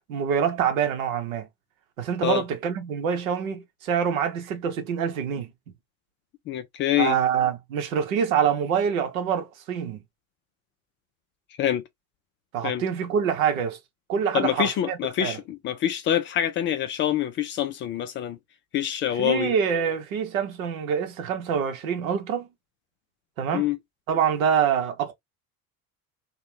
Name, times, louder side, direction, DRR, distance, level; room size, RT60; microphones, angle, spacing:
voice 1, 0.1-1.5 2.0-5.5 7.0-10.0 12.5-13.8 14.1-15.4 19.2-22.5 23.4-23.7 24.1-25.1, right 7 dB, 70° right, 0.9 m, -25 dB
voice 2, 6.5-7.2 11.6-11.8 12.6-12.8 14.3-18.4 18.7-19.5 23.5-23.8, left 11 dB, 30° left, 0.4 m, -25 dB
2.6 x 2.3 x 3.2 m
figure-of-eight pair, 65°, 43 cm